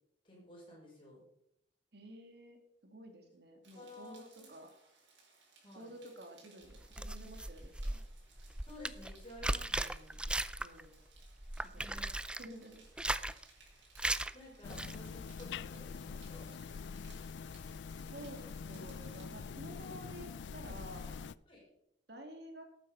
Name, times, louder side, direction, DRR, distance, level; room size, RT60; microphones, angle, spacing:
voice 1, 0.2-1.2 3.7-4.5 5.6-5.9 8.6-10.2 11.8-12.1 13.7-13.9 14.3-16.5 21.5-21.7, left 1 dB, 30° left, -3 dB, 5.7 m, -53 dB
voice 2, 1.9-4.7 5.7-8.0 10.6-11.0 11.7-11.9 12.4-12.8 18.1-21.2 22.1-22.6, right 1 dB, 65° right, 5 dB, 2.1 m, -51 dB
sound 1, 3.6-19.2, right 4 dB, 85° right, 4.5 m, -64 dB
sound 2, 6.7-10.9 11.2-12.5 12.9-13.4 14.0-14.3 14.7-15.0, right 1 dB, 5° right, 0.4 m, -37 dB
sound 3, 14.6-21.4, left 5 dB, 75° left, 0.4 m, -45 dB
12.0 x 9.0 x 5.4 m, 0.77 s
head